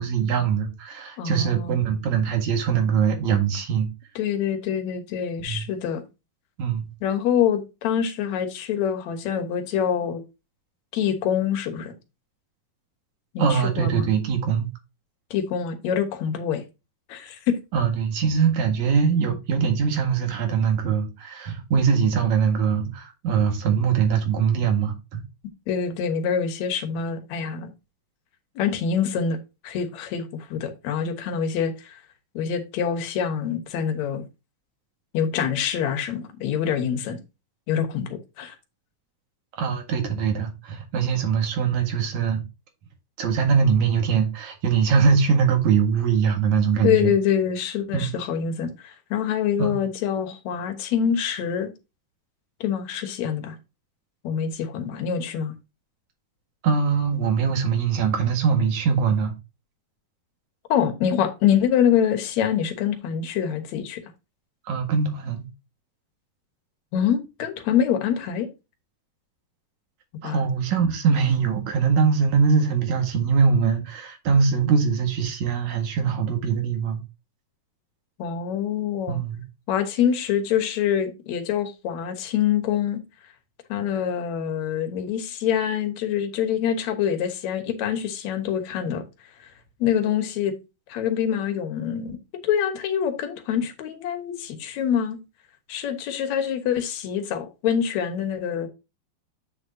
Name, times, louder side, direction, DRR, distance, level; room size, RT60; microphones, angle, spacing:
voice 1, 0.0-3.9 5.4-5.6 6.6-6.9 13.4-14.7 17.7-25.2 39.6-42.4 43.2-47.1 47.9-48.1 49.6-49.8 56.6-59.3 64.7-65.5 70.2-77.0 79.1-79.4, right 6 dB, 60° right, 2.9 m, -22 dB
voice 2, 1.2-1.8 4.2-6.0 7.0-10.2 10.9-12.0 13.3-14.1 15.3-16.6 17.1-17.6 25.7-27.7 28.6-29.4 29.6-32.0 32.3-34.2 35.1-37.2 37.7-38.6 46.8-51.7 52.6-53.6 54.2-55.5 60.7-64.0 66.9-68.5 70.2-70.4 78.2-79.2 79.7-83.0 83.7-89.0 89.8-90.5 90.9-95.2 95.7-98.7, left 8 dB, 65° left, 2.3 m, -25 dB
8.4 x 6.6 x 2.7 m
omnidirectional pair, 3.8 m